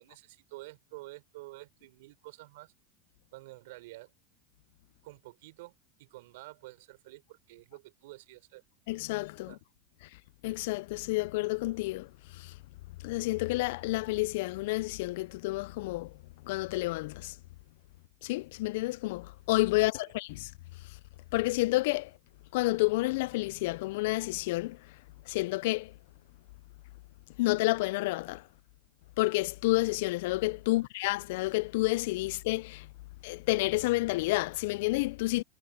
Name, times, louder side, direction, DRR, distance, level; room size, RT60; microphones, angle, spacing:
voice 1, 0.0-2.7 3.3-4.1 5.0-8.6 9.5-9.6 19.8-19.9 30.7-30.8, right 20 dB, 75° right, 3.7 m, -49 dB
voice 2, 8.9-9.6 10.4-12.5 13.0-16.1 16.4-17.4 18.2-20.5 21.3-22.1 22.5-24.8 25.3-25.9 27.4-28.4 29.2-32.9 33.2-35.4, left 21 dB, 70° left, 0.3 m, -30 dB
supercardioid pair, 110°, 0 cm